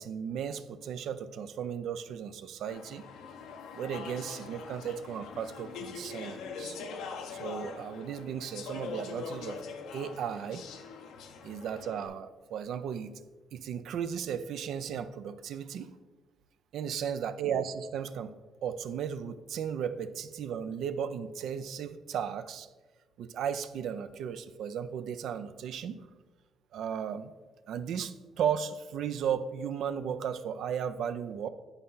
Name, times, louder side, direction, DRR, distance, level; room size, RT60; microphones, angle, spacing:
voice 1, 0.0-3.0 3.7-6.8 7.3-9.6 9.9-10.6 11.4-13.1 13.5-15.9 16.7-18.3 18.6-22.7 23.2-25.9 26.7-27.3 27.7-31.5, right 8 dB, 75° right, 12 dB, 0.4 m, -35 dB
Speech / Chatter, 2.7-12.1, left 5 dB, 85° left, 0.7 m, -43 dB
9.8 x 4.1 x 3.9 m, 1.2 s
cardioid pair, 85°, 0 cm